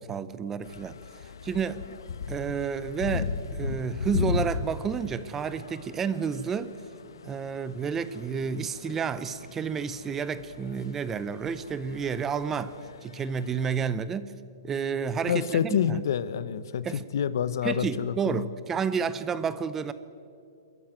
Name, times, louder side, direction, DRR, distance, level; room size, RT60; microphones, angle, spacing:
voice 1, 0.1-1.0 1.4-1.8 2.3-6.7 7.2-12.7 13.0-14.3 14.6-16.0 16.8-17.0 17.6-19.9, right 6 dB, 10° right, 15 dB, 0.6 m, -30 dB
sound 1, 0.6-13.7, left 5 dB, 90° left, 1.2 m, -37 dB
voice 2, 15.3-18.4, left 8 dB, 60° left, 15 dB, 1.0 m, -28 dB
26.0 x 14.0 x 9.2 m, 2.4 s
hypercardioid pair, 165°, 2 cm